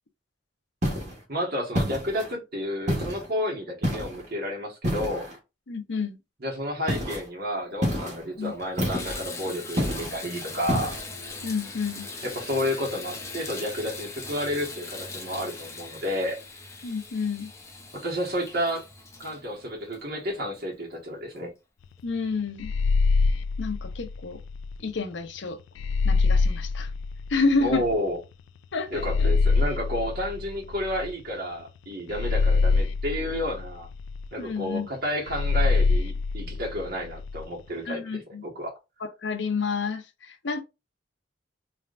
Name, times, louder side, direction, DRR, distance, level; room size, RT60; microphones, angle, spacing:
sound 1, 0.8-1.2 1.8-2.3 2.9-3.3 3.8-4.3 4.8-5.4 6.9-7.2 7.8-8.2 8.8-9.2 9.8-10.2 10.7-11.0, equal, 40° right, 1.5 m, -28 dB
voice 1, 1.3-5.3 6.4-10.9 12.2-16.4 17.9-18.8 19.2-21.5 27.6-28.2 28.9-33.9 34.3-38.7, equal, 55° right, 1.5 m, -31 dB
voice 2, 5.7-6.2 8.4-8.5 11.4-12.1 16.8-17.5 22.0-22.7 23.6-24.4 24.8-25.6 26.0-26.9 27.3-27.8 28.7-29.3 34.4-34.9 37.9-38.4 39.0-40.6, left 4 dB, 70° left, 0.7 m, -29 dB
Water tap faucet / Bathtub (filling or washing), 7.7-7.8 8.3-20.7 21.4-21.5 22.0-22.1, left 3 dB, 15° left, 0.7 m, -40 dB
sound 2, 22.6-24.8 25.8-27.9 28.9-31.3 32.1-34.3 35.3-37.4, left 4 dB, 90° left, 0.3 m, -25 dB
3.3 x 3.3 x 2.5 m
head